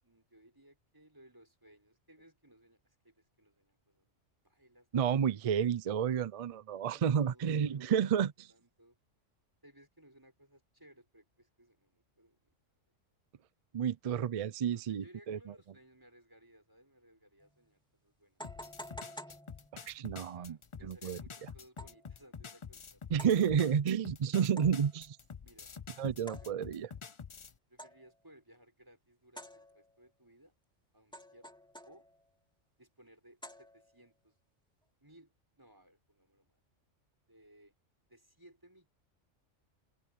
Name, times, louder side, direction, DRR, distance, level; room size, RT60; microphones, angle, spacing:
voice 1, 0.0-4.1 4.4-5.4 6.9-9.0 9.6-12.5 14.6-18.4 20.3-23.1 25.4-26.1 26.4-26.6 27.7-30.5 30.9-31.5 31.8-32.1 32.8-34.4 35.0-36.6 37.3-37.7 38.1-38.9, right 1 dB, 15° right, 6.2 m, -62 dB
voice 2, 4.9-8.3 13.7-15.4 19.9-20.6 20.8-21.2 23.1-25.2 26.0-26.9, right 8 dB, 70° right, 0.3 m, -30 dB
sound 1, 17.4-17.5 18.4-20.1 21.8-22.1 23.2-23.5 24.6-25.0 26.3-26.9 27.8-28.2 29.4-30.1 31.1-32.3 33.4-34.1, equal, 5° left, 2.4 m, -50 dB
sound 2, 18.4-27.6, left 6 dB, 45° left, 0.4 m, -48 dB
omnidirectional pair, 1.3 m